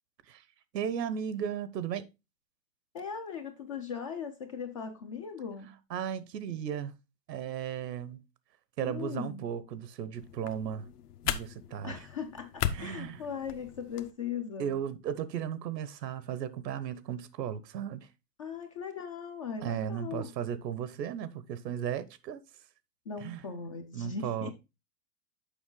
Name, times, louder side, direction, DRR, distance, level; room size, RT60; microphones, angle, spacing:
voice 1, 0.7-2.1 5.9-7.0 7.3-8.2 8.8-10.9 11.2-12.0 12.7-13.2 14.6-18.1 19.6-22.4 23.2-23.4 23.9-24.5, right 9 dB, 80° right, 1.0 m, -35 dB
voice 2, 2.9-5.8 8.8-9.5 11.8-14.7 18.4-20.3 23.1-24.5, left 6 dB, 25° left, 0.3 m, -39 dB
sound 1, 10.1-14.1, left 11 dB, 65° left, 0.9 m, -37 dB
7.1 x 5.4 x 3.8 m
hypercardioid pair, 130°, 50 cm